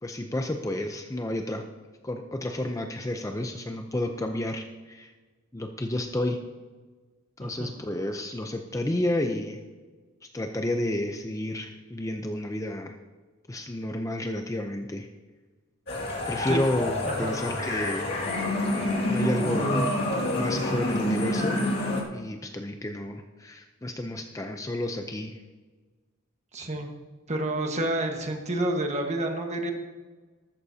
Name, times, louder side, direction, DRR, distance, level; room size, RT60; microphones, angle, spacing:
voice 1, 0.0-1.6 2.0-5.1 5.5-6.4 7.4-9.6 10.3-12.9 13.5-15.1 16.3-18.1 19.1-20.0 20.3-25.4, left 1 dB, 15° left, 5 dB, 0.6 m, -31 dB
voice 2, 7.4-7.7 16.5-16.6 17.0-17.3 26.5-26.9 27.3-29.7, right 1 dB, 30° right, 3 dB, 1.4 m, -29 dB
sound 1, 15.9-22.0, left 1 dB, 50° left, 2.2 m, -28 dB
14.0 x 13.0 x 2.8 m, 1.3 s
head